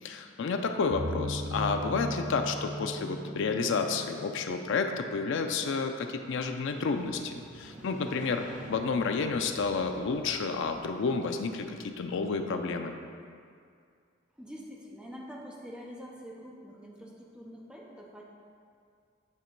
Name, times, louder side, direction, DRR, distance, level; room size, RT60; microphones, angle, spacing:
voice 1, 0.0-8.4 8.7-12.9, left 4 dB, 65° left, 5 dB, 0.4 m, -30 dB
sound 1, 0.9-4.6, equal, 55° right, 0.6 m, -37 dB
Motorcycle, 6.4-12.3, right 1 dB, 40° right, 1.0 m, -50 dB
voice 2, 14.4-18.2, equal, 5° right, -3 dB, 0.7 m, -45 dB
8.7 x 3.0 x 4.5 m, 2.2 s
head